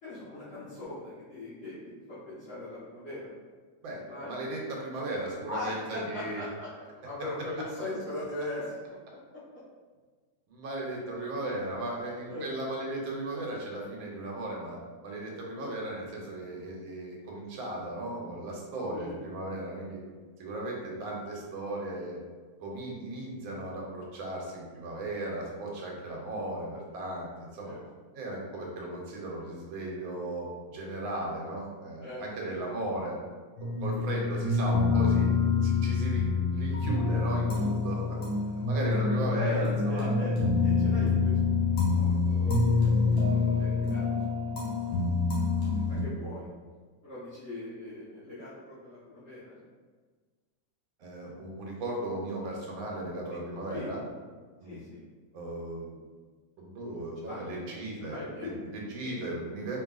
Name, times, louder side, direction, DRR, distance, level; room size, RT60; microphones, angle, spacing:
voice 1, 0.0-1.8 2.1-3.4 4.0-4.4 5.5-8.7 12.3-12.5 15.5-15.8 18.9-19.2 26.2-26.3 27.6-27.8 32.0-32.6 33.8-34.4 39.3-40.3 40.6-44.2 44.4-44.9 45.7-46.5 47.0-49.6 53.3-53.4 53.7-53.9 54.6-55.0 57.1-58.6 58.9-59.1, left 2 dB, 40° left, -13 dB, 1.2 m, -40 dB
voice 2, 3.8-6.4 10.5-14.8 15.0-20.0 20.4-22.2 22.6-27.7 28.1-33.2 33.8-35.3 35.6-38.2 38.7-40.1 51.0-54.0 54.6-54.8 55.3-56.0 56.6-59.8, right 1 dB, 80° right, -2 dB, 1.6 m, -36 dB
sound 1, 33.6-46.0, left 4 dB, 75° left, 2.0 m, -26 dB
4.6 x 3.3 x 2.4 m, 1.5 s
omnidirectional pair, 2.1 m